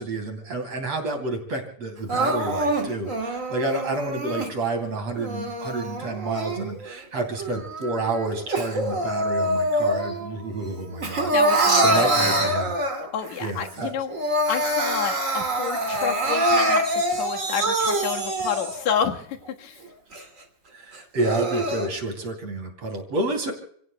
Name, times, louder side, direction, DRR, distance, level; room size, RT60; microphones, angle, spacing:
voice 1, 0.0-12.7 13.4-13.9 20.7-23.5, right 2 dB, 40° right, 5 dB, 3.8 m, -29 dB
Crying sobbing, 2.1-4.5 5.1-6.9 7.4-10.3 10.6-13.3 13.7-13.8 14.1-18.9 19.5-19.6 20.1-20.2 20.9-21.9, right 1 dB, 25° right, 2.0 m, -25 dB
voice 2, 11.3-12.5 13.1-14.2 14.5-19.8, left 8 dB, 55° left, 3 dB, 2.4 m, -29 dB
30.0 x 17.5 x 2.3 m, 0.63 s
omnidirectional pair, 4.7 m